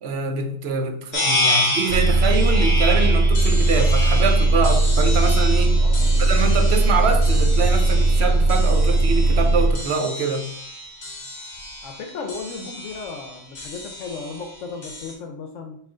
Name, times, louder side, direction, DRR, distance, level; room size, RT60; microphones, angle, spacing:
voice 1, 0.0-5.8 6.2-10.5, right 4 dB, 60° right, 0.8 m, -25 dB
sound 1, 1.1-15.1, left 1 dB, 50° left, 1.2 m, -30 dB
sound 2, 1.9-9.7, right 2 dB, 90° right, 1.1 m, -18 dB
voice 2, 11.8-15.8, left 4 dB, 75° left, 0.9 m, -35 dB
5.7 x 2.4 x 3.7 m
omnidirectional pair, 1.3 m